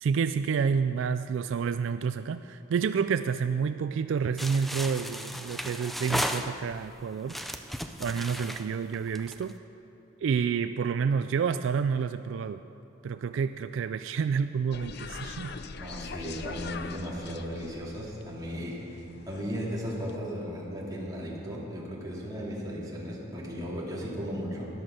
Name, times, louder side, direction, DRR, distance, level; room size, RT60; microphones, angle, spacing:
voice 1, 0.0-7.4 8.0-9.5 10.2-12.6 13.0-15.5, right 6 dB, 75° right, 11 dB, 0.3 m, -29 dB
sound 1, 4.4-6.9 7.3-9.5, equal, ahead, 0.5 m, -35 dB
sound 2, 14.7-20.2, left 4 dB, 60° left, 0.6 m, -42 dB
voice 2, 15.7-18.9 19.3-24.7, equal, 20° right, -5 dB, 2.7 m, -36 dB
13.0 x 11.0 x 6.4 m, 2.9 s
head